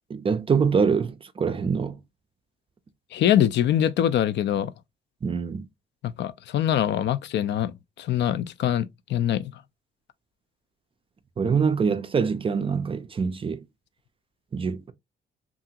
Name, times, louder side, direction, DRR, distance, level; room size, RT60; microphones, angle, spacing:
voice 1, 0.1-2.0 5.2-5.7 11.4-13.6 14.5-14.9, right 5 dB, 25° right, 0.4 m, -24 dB
voice 2, 3.1-4.7 6.0-9.6, left 10 dB, 65° left, 0.4 m, -24 dB
2.8 x 2.5 x 2.7 m
cardioid pair, 90°, 20 cm